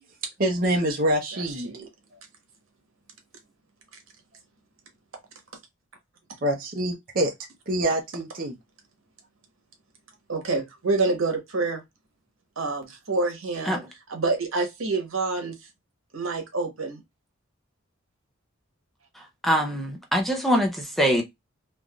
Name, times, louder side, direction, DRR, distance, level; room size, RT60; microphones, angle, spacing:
voice 1, 0.4-1.7 6.4-7.3 7.7-8.6, right 1 dB, 45° right, 0.6 m, -25 dB
voice 2, 10.3-11.8 12.6-13.8 14.1-15.6 16.1-17.0, right 3 dB, 75° right, 1.1 m, -27 dB
voice 3, 19.2-21.2, equal, ahead, 0.6 m, -24 dB
3.3 x 2.5 x 2.2 m
head